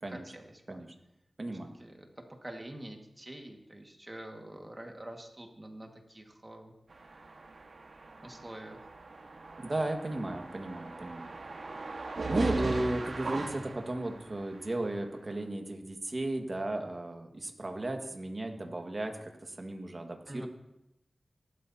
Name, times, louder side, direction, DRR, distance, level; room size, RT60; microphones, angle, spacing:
voice 1, 0.1-0.8 1.8-6.7 8.2-8.8 20.3-20.5, right 1 dB, 25° right, 2 dB, 1.9 m, -46 dB
voice 2, 1.4-1.7 9.6-11.3 12.3-20.5, right 2 dB, 40° right, 3 dB, 1.7 m, -35 dB
sound 1, 6.9-14.5, right 3 dB, 70° right, 1.6 m, -39 dB
18.5 x 12.5 x 2.9 m, 0.87 s
wide cardioid pair, 75°, 0 cm